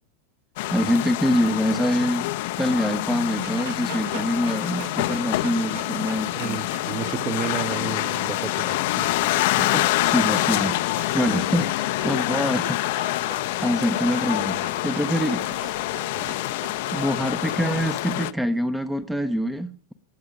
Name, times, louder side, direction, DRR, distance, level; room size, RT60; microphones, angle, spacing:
sound 1, 0.6-18.3, left 18 dB, 50° left, 0.6 m, -26 dB
voice 1, 0.7-2.3 2.6-6.7 9.5-13.1 13.6-15.8 16.9-19.9, equal, 5° right, 0.7 m, -25 dB
Dog, 3.4-17.3, right 4 dB, 65° right, 2.6 m, -43 dB
voice 2, 6.3-9.1 16.1-16.3, right 7 dB, 25° right, 1.1 m, -32 dB
sound 2, 8.5-17.9, left 5 dB, 75° left, 1.4 m, -44 dB
20.0 x 7.1 x 5.1 m
figure-of-eight pair, 90°, 0 cm